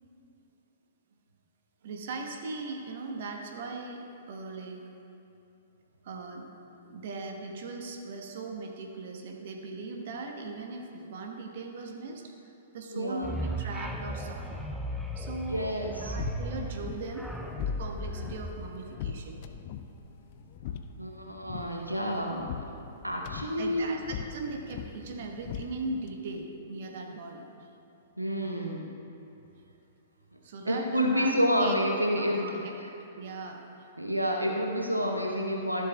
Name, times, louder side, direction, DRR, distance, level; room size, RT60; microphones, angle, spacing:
voice 1, 1.8-4.8 6.0-6.5 6.9-14.6 15.1-17.3 17.6-19.4 23.6-24.0 24.3-27.7 30.4-31.3 31.6-31.7 32.1-32.5 33.2-33.7, right 3 dB, 50° right, 2 dB, 1.2 m, -39 dB
voice 2, 12.9-13.3 15.5-16.2 21.0-22.5 23.0-24.0 28.2-28.9 30.6-32.5 34.0-35.9, equal, 90° right, 0 dB, 0.9 m, -29 dB
sound 1, 13.2-19.4, equal, ahead, 0.6 m, -36 dB
sound 2, 15.6-26.1, left 8 dB, 40° left, 0.5 m, -42 dB
14.0 x 11.5 x 2.3 m, 2.9 s
figure-of-eight pair, 110°, 0 cm